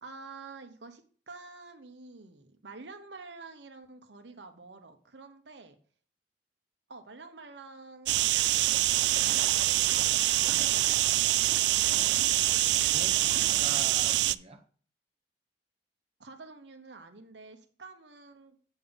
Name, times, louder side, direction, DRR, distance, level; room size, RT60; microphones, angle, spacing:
voice 1, 0.0-5.7 6.9-9.0 16.2-18.6, right 3 dB, 90° right, 1.2 m, -48 dB
sound 1, 8.1-14.3, right 15 dB, 75° right, 0.3 m, -25 dB
voice 2, 11.5-12.2 12.9-14.6, right 3 dB, 35° right, 1.1 m, -45 dB
8.4 x 5.5 x 4.0 m
head